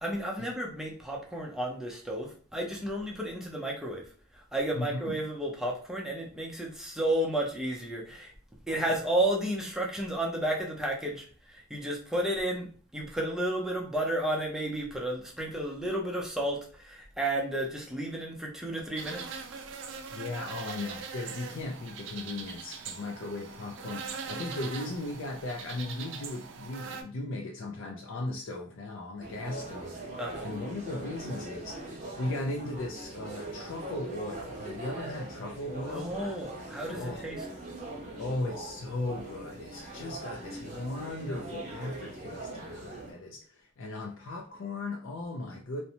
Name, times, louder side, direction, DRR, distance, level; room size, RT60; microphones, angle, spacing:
voice 1, 0.0-4.0 4.5-8.3 8.7-19.3 30.2-30.5 35.7-37.4, right 1 dB, 5° right, -2 dB, 0.5 m, -32 dB
voice 2, 4.7-5.2 8.7-8.9 20.1-30.0 30.4-36.1 36.9-37.3 38.2-45.8, left 2 dB, 70° left, 0 dB, 0.4 m, -37 dB
sound 1, 19.0-27.0, right 5 dB, 65° right, 0.4 m, -41 dB
sound 2, 29.2-43.1, right 2 dB, 35° right, 0.7 m, -41 dB
2.6 x 2.1 x 2.8 m, 0.42 s
head